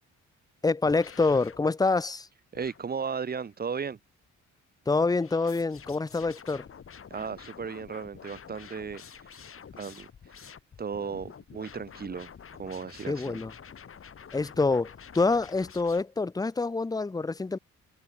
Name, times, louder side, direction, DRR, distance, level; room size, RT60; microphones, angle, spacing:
voice 1, 0.6-2.3 4.9-6.7 13.1-13.5 14.3-17.6, left 3 dB, 10° left, 0.7 m, -26 dB
sound 1, 0.8-1.6 2.5-3.5 5.2-16.0, left 7 dB, 45° left, 3.6 m, -48 dB
voice 2, 2.5-4.0 7.1-9.0 9.8-10.1 10.8-12.3 12.6-13.4, right 6 dB, 30° right, 1.0 m, -35 dB
cardioid pair, 90°, 30 cm